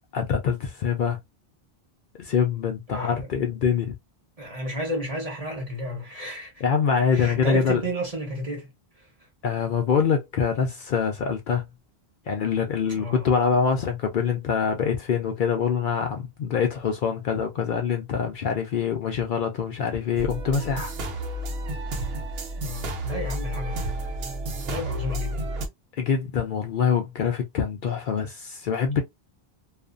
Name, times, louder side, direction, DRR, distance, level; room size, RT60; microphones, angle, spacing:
voice 1, 0.1-1.2 2.2-4.0 6.6-7.8 9.4-11.6 12.3-20.9 26.0-29.0, left 6 dB, 60° left, 0.6 m, -25 dB
voice 2, 2.9-3.3 4.4-6.6 7.1-8.7 9.0-9.1 12.9-13.3 22.6-25.5, equal, 35° right, 1.1 m, -32 dB
sound 1, 20.2-25.7, right 1 dB, 75° right, 0.9 m, -31 dB
2.5 x 2.4 x 2.4 m
omnidirectional pair, 1.0 m